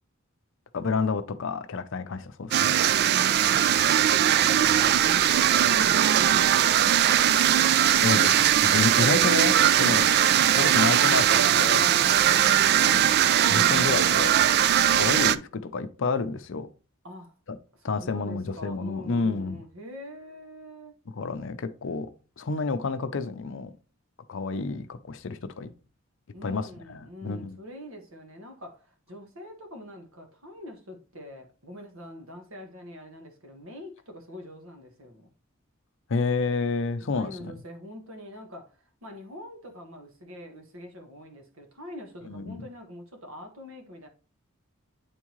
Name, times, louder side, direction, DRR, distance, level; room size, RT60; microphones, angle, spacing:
voice 1, 0.7-2.8 4.7-4.9 7.6-7.7 8.0-10.0 10.6-11.8 12.8-13.1 13.5-14.4 14.9-16.7 17.5-17.6 17.8-19.6 21.2-22.1 22.4-23.7 24.3-25.7 26.4-27.6 36.1-37.5 42.3-42.6, left 4 dB, 65° left, 0.6 m, -29 dB
sound 1, 2.5-15.4, right 10 dB, 50° right, 0.3 m, -20 dB
voice 2, 3.0-6.9 9.8-10.6 12.0-12.8 17.0-17.3 17.7-21.0 26.3-35.3 37.1-44.1, left 1 dB, 80° right, 1.4 m, -44 dB
8.9 x 3.6 x 3.1 m
head